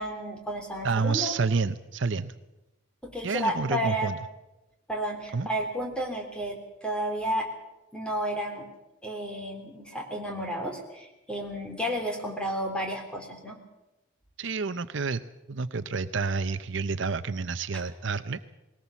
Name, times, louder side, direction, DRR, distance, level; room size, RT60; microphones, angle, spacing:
voice 1, 0.0-1.3 3.0-4.1 4.9-7.5 7.9-8.7 9.0-13.6, equal, 5° left, 1 dB, 3.4 m, -32 dB
voice 2, 0.8-2.4 3.2-4.2 5.3-5.5 14.4-15.2 15.5-18.5, right 4 dB, 60° right, 13 dB, 0.7 m, -29 dB
20.0 x 18.0 x 7.1 m, 0.99 s
head